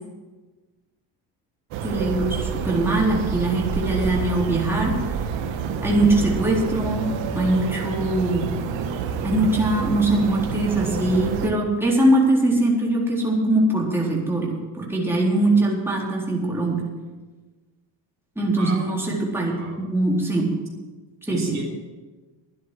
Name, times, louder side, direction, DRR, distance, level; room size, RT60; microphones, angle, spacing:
sound 1, 1.7-11.5, right 6 dB, 80° right, 1.6 m, -28 dB
voice 1, 1.8-5.0 5.8-7.1 7.3-8.5 9.2-16.8 18.4-20.5 21.2-21.6, right 2 dB, 5° right, -4 dB, 4.0 m, -22 dB
voice 2, 18.4-18.9 19.6-19.8 21.3-21.6, right 3 dB, 35° right, -2 dB, 3.6 m, -34 dB
12.0 x 10.0 x 8.0 m, 1.3 s
cardioid pair, 95°, 44 cm